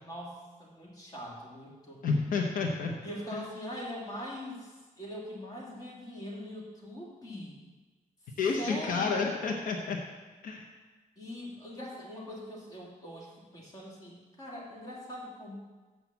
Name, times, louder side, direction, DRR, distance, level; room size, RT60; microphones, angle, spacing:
voice 1, 0.0-2.0 3.0-7.5 8.6-9.5 11.2-15.6, equal, 30° left, -4 dB, 2.3 m, -42 dB
voice 2, 2.0-2.9 3.3-3.4 8.4-10.0 10.4-10.7, left 4 dB, 80° left, 1 dB, 1.0 m, -30 dB
7.5 x 6.2 x 7.2 m, 1.3 s
wide cardioid pair, 160°, 14 cm